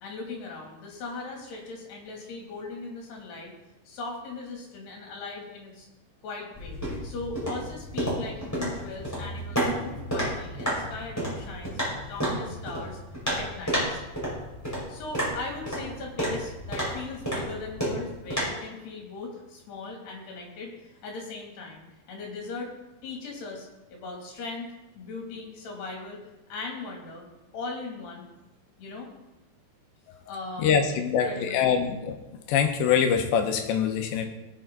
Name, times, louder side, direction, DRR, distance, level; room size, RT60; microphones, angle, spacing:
voice 1, 0.0-3.5 3.9-5.9 6.2-6.8 7.0-13.0 13.3-14.0 14.9-22.7 23.0-26.2 26.5-27.2 27.5-28.2 28.8-29.1 30.3-31.8, left 3 dB, 70° left, -1 dB, 4.8 m, -39 dB
sound 1, 6.5-18.4, equal, 5° left, 5.0 m, -31 dB
voice 2, 30.6-32.2 32.5-34.3, left 7 dB, 90° left, 5 dB, 3.3 m, -24 dB
18.5 x 8.5 x 4.0 m, 1.0 s
omnidirectional pair, 5.0 m